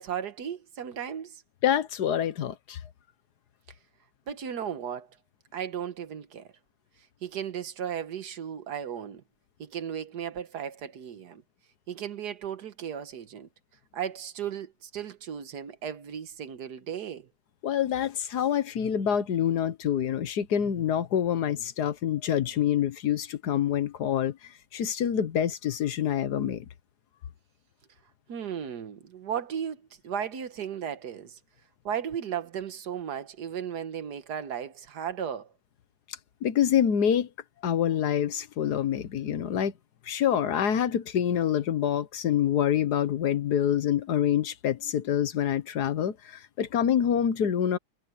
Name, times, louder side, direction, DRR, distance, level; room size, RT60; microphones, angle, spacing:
voice 1, 0.0-1.4 4.3-5.2 5.5-6.5 7.2-9.2 9.6-11.4 11.9-13.5 13.9-17.3 28.3-31.4 31.9-35.5, right 8 dB, 80° right, 1.7 m, -35 dB
voice 2, 1.6-2.8 17.6-24.4 24.7-26.7 36.4-37.3 37.6-39.7 40.1-47.8, left 9 dB, 80° left, 1.7 m, -26 dB
omnidirectional pair, 1.7 m